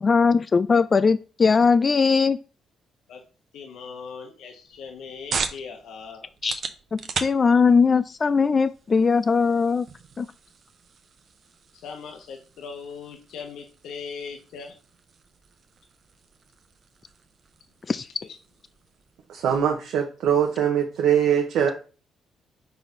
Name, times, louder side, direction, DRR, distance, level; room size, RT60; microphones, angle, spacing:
voice 1, 0.0-2.4 6.4-6.6 6.9-9.9 10.2-10.3 17.9-18.1, left 5 dB, 35° left, 0.3 m, -20 dB
voice 2, 3.5-6.3 11.7-14.8 18.2-18.4, left 5 dB, 80° left, 1.0 m, -39 dB
sound 1, 4.7-19.8, right 5 dB, 55° right, 0.7 m, -39 dB
voice 3, 19.3-21.7, right 8 dB, 80° right, 0.9 m, -22 dB
4.6 x 4.1 x 5.2 m
cardioid pair, 90°, 0 cm